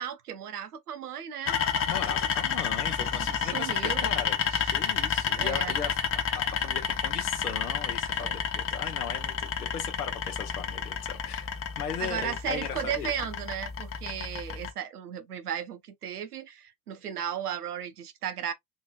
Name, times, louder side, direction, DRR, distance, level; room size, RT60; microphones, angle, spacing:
voice 1, 0.0-1.6 3.4-4.1 4.5-4.7 5.3-5.8 8.2-8.4 12.0-18.5, right 9 dB, 80° right, 0.7 m, -35 dB
sound 1, 1.5-14.7, left 7 dB, 30° left, 0.9 m, -30 dB
voice 2, 1.9-4.4 4.7-13.1, left 7 dB, 80° left, 1.1 m, -38 dB
5.2 x 3.0 x 2.3 m
figure-of-eight pair, 65°, 45 cm